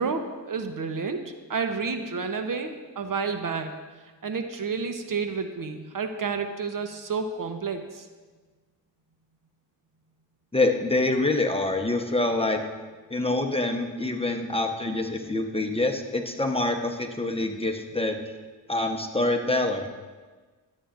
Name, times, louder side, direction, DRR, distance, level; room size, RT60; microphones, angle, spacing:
voice 1, 0.0-3.7 4.2-8.1, right 5 dB, 45° right, 7 dB, 1.0 m, -30 dB
voice 2, 10.5-12.6 13.1-18.2 18.7-19.9, left 2 dB, 15° left, 4 dB, 1.0 m, -26 dB
13.5 x 8.4 x 2.5 m, 1.4 s
supercardioid pair, 50°, 44 cm